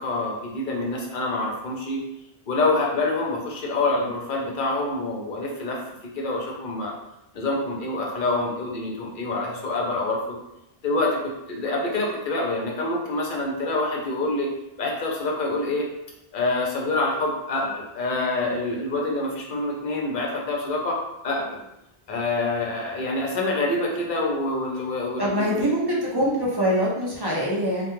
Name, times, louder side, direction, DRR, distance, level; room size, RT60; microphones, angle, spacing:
voice 1, 0.0-2.0 2.5-6.9 7.3-10.2 10.8-14.5 14.8-15.9 16.3-21.0 21.2-21.6 22.1-25.7, left 2 dB, 60° left, -2 dB, 0.7 m, -26 dB
voice 2, 25.2-27.9, equal, 40° right, -5 dB, 0.3 m, -24 dB
2.2 x 2.2 x 2.9 m, 0.89 s
omnidirectional pair, 1.0 m